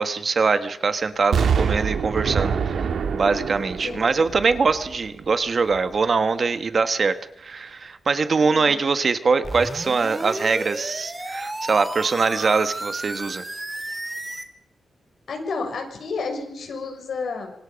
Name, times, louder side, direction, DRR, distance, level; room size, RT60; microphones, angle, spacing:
voice 1, 0.0-13.4, right 4 dB, 40° right, 11 dB, 1.4 m, -23 dB
Explosion, 1.3-5.3 5.7-5.8, right 6 dB, 80° right, 2.1 m, -25 dB
voice 2, 3.8-4.2 8.4-8.9 15.3-17.5, left 4 dB, 65° left, 3 dB, 6.6 m, -31 dB
sound 1, 9.4-14.5, right 1 dB, 15° right, 2.2 m, -33 dB
26.5 x 25.0 x 5.2 m, 0.76 s
wide cardioid pair, 160°, 0 cm